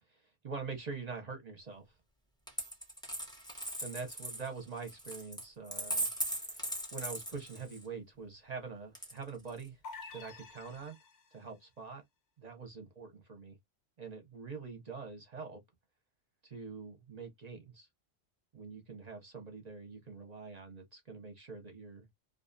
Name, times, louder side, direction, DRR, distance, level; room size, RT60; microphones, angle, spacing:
voice 1, 0.1-1.8 3.8-6.1 6.3-9.8 10.1-11.0 11.3-12.0 12.4-13.6 14.0-15.6 16.4-17.9 18.5-22.1, right 5 dB, 45° right, 0.6 m, -45 dB
Coin (dropping), 2.5-7.9 8.9-9.7, right 1 dB, 5° left, 0.5 m, -39 dB
sound 1, 9.8-11.5, left 3 dB, 55° left, 0.5 m, -49 dB
2.5 x 2.3 x 2.4 m
omnidirectional pair, 1.2 m